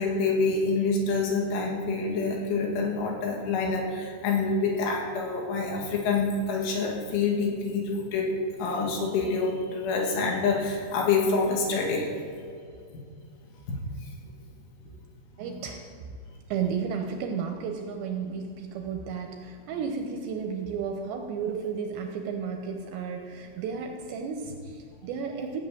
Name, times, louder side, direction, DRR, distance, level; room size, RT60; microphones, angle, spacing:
voice 1, 0.0-8.3 8.6-12.1 13.7-13.8, left 4 dB, 75° left, 0 dB, 4.5 m, -27 dB
voice 2, 15.4-15.9 16.5-25.6, right 6 dB, 75° right, 3 dB, 2.8 m, -33 dB
16.0 x 6.9 x 8.7 m, 2.3 s
omnidirectional pair, 5.8 m